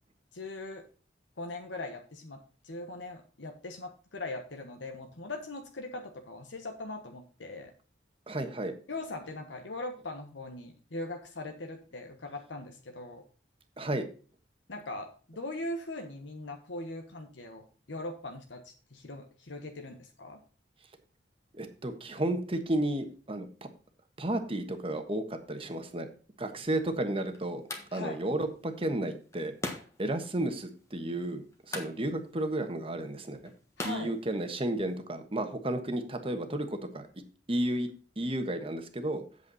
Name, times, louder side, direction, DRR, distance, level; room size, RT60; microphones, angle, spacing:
voice 1, 0.3-0.8 1.4-7.7 8.9-13.2 14.7-20.4 27.9-28.2 33.8-34.1, left 2 dB, 75° left, 4 dB, 1.2 m, -40 dB
voice 2, 8.3-8.7 13.8-14.0 21.5-23.5 24.2-26.1 26.4-27.6 27.9-29.5 30.0-33.4 33.8-36.7 36.9-37.1 37.5-37.9 38.2-39.2, right 1 dB, 30° right, 7 dB, 1.3 m, -32 dB
sound 1, 26.5-35.0, left 2 dB, 15° left, 1.5 m, -45 dB
8.3 x 8.1 x 4.1 m, 0.38 s
head